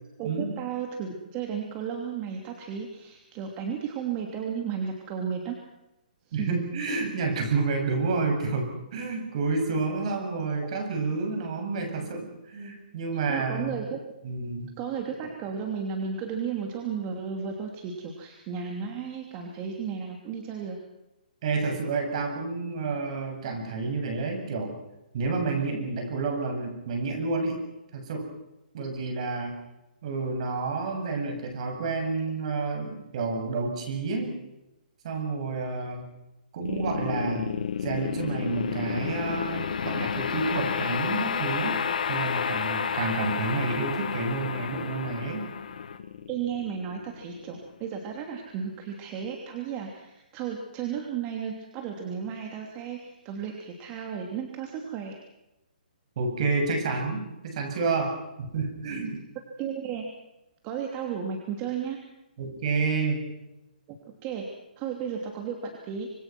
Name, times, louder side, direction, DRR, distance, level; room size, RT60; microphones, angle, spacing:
voice 1, 0.2-5.6 6.3-6.6 10.6-10.7 13.3-14.0 14.8-20.8 46.3-55.2 59.6-60.0 60.6-62.0 64.2-64.5 64.8-66.1, right 7 dB, 25° right, 2 dB, 2.9 m, -34 dB
voice 2, 6.3-13.7 14.2-14.7 21.4-24.7 25.1-27.6 27.9-28.3 28.7-29.6 30.0-34.3 35.0-36.1 36.5-37.6 37.8-41.8 42.1-45.4 56.2-59.2 62.4-63.3, right 4 dB, 45° right, 4 dB, 7.5 m, -29 dB
sound 1, 36.6-47.8, left 7 dB, 60° left, 2.1 m, -31 dB
26.0 x 25.0 x 6.2 m, 0.93 s
hypercardioid pair, 160°, 5 cm